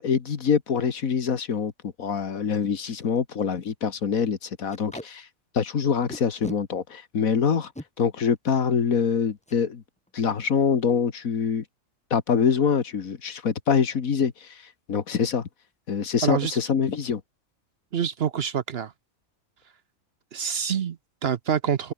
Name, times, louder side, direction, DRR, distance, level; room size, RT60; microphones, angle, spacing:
voice 1, 0.0-1.7 2.0-5.3 5.5-7.7 8.0-9.8 10.1-11.6 12.1-14.5 14.9-15.5 15.9-17.2, left 6 dB, 80° left, 2.0 m, -24 dB
Packing tape duct tape, 1.1-1.2 1.7-1.8 2.0-2.2 2.6-2.7 3.0-3.2 3.5-3.7 4.7-5.1 6.1-6.6 7.5-7.9 9.4-9.6 10.0-10.1 10.4-10.8, left 1 dB, 5° left, 1.1 m, -39 dB
voice 2, 16.2-16.6 17.9-18.9 20.3-21.9, right 8 dB, 55° right, 0.9 m, -26 dB
omnidirectional pair, 1.4 m